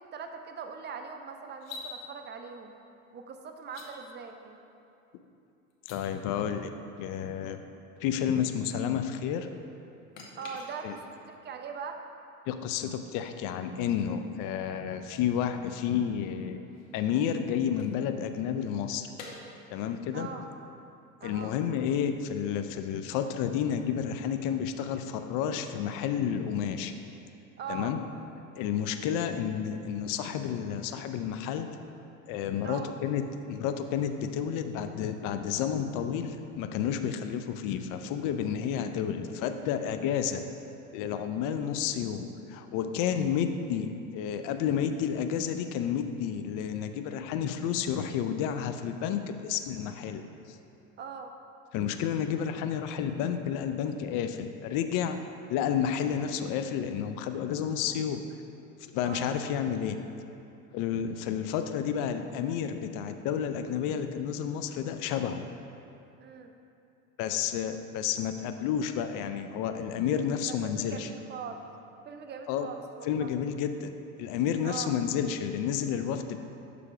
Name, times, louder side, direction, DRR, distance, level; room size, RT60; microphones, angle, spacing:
voice 1, 0.0-2.7 3.1-4.6 10.4-12.0 20.1-20.5 21.2-21.5 27.6-27.9 32.6-32.9 41.5-41.7 51.0-51.3 59.0-59.3 66.2-66.5 70.6-71.6 72.1-73.3 74.6-74.9, right 6 dB, 25° right, 5 dB, 0.5 m, -41 dB
sound 1, 1.5-1.9 3.6-3.9 5.7-6.0 10.1-11.2 14.3-14.4 16.4-18.6 19.2-19.3, left 4 dB, 75° left, 1.0 m, -47 dB
voice 2, 5.9-6.7 7.0-7.6 8.0-9.5 10.8-11.0 12.5-16.6 16.9-19.1 19.7-20.3 21.2-26.9 27.7-28.0 28.6-31.7 32.3-33.2 33.5-40.4 40.9-50.6 51.7-55.2 55.5-58.2 58.9-60.0 60.7-65.4 67.2-71.1 72.5-72.7 73.0-73.9 74.2-76.5, left 8 dB, 50° left, 8 dB, 0.5 m, -31 dB
6.7 x 3.4 x 4.8 m, 2.7 s
hypercardioid pair, 80°, 40 cm